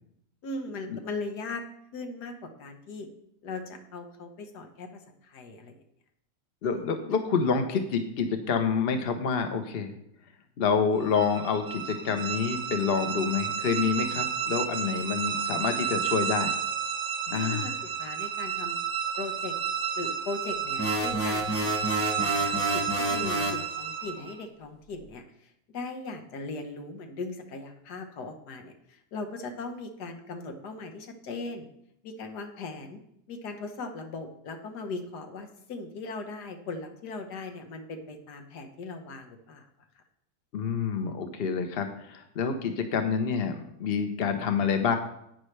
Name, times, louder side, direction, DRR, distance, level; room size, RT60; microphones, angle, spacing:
voice 1, 0.4-1.6 1.9-3.1 3.4-5.8 6.6-6.9 17.3-18.8 19.2-19.5 19.9-31.7 32.0-33.0 33.3-39.7, left 3 dB, 85° left, 5 dB, 1.7 m, -39 dB
voice 2, 6.6-9.9 10.6-16.5 17.3-17.7 40.5-44.9, left 6 dB, 45° left, 6 dB, 1.0 m, -28 dB
sound 1, 11.0-24.4, right 8 dB, 65° right, 1.0 m, -31 dB
sound 2, 20.8-23.6, equal, 10° left, 1.1 m, -29 dB
11.0 x 9.3 x 3.3 m, 0.76 s
omnidirectional pair, 1.7 m